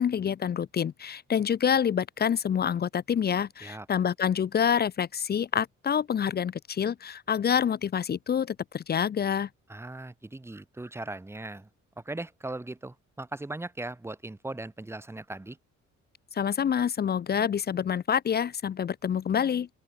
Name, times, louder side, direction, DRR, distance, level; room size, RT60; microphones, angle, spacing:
voice 1, 0.0-9.5 16.3-19.7, left 8 dB, 35° left, 0.5 m, -27 dB
voice 2, 9.7-11.7 12.0-15.6, right 2 dB, 10° right, 0.9 m, -38 dB
open air
cardioid pair, 90°, 30 cm